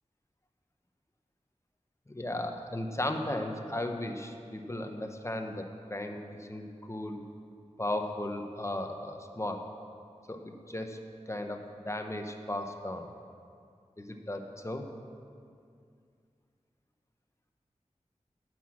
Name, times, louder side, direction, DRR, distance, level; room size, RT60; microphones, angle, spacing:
voice 1, 2.1-7.2 7.8-9.6 10.3-11.0 11.3-13.1 14.0-14.9, left 1 dB, 25° left, 4 dB, 0.9 m, -36 dB
9.1 x 6.1 x 7.2 m, 2.3 s
wide cardioid pair, 55°, 12 cm